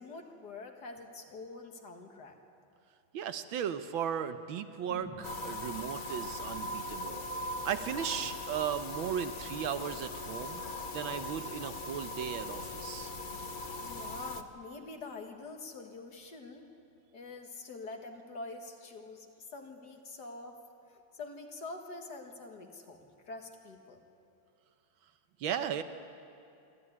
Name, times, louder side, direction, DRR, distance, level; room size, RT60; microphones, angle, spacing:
voice 1, 0.0-2.4 6.1-6.2 13.8-16.7 17.1-20.6 20.9-24.0, left 3 dB, 55° left, 4 dB, 2.1 m, -46 dB
voice 2, 3.1-7.2 7.6-10.6 10.9-13.1 25.4-25.8, right 8 dB, 75° right, 10 dB, 1.6 m, -36 dB
sound 1, 4.9-8.9 9.2-9.3, left 1 dB, 25° left, 3.7 m, -54 dB
sound 2, 5.2-14.4, left 2 dB, 75° left, 0.4 m, -40 dB
27.0 x 12.5 x 9.7 m, 2.6 s
omnidirectional pair, 2.3 m